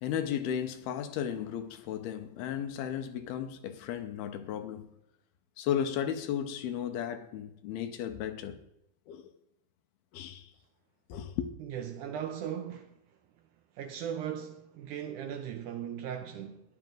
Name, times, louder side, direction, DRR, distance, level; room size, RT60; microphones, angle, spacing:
voice 1, 0.0-4.9 5.6-8.6 9.1-9.3 10.1-10.5 11.1-11.5, left 9 dB, 85° left, 2.8 m, -34 dB
voice 2, 11.6-13.0 13.7-16.6, right 9 dB, 85° right, 1.7 m, -38 dB
14.5 x 11.0 x 3.9 m
omnidirectional pair, 4.4 m